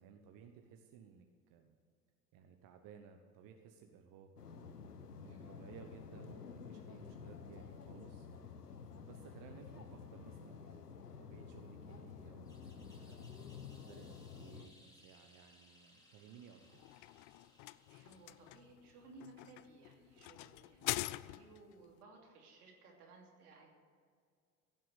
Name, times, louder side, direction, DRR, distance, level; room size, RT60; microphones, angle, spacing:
voice 1, 0.0-1.8 2.3-4.9 5.2-8.3 9.0-13.2 13.6-16.8, right 7 dB, 45° right, 5 dB, 1.2 m, -58 dB
sound 1, 4.4-14.7, left 6 dB, 90° left, 0.9 m, -51 dB
voice 2, 5.2-5.6 17.6-23.7, right 3 dB, 75° right, 0 dB, 3.0 m, -59 dB
sound 2, 12.5-18.8, left 1 dB, 10° left, 2.9 m, -66 dB
sound 3, 16.6-21.7, left 19 dB, 45° left, 0.4 m, -44 dB
16.0 x 7.6 x 8.2 m, 2.1 s
figure-of-eight pair, 75°, 46 cm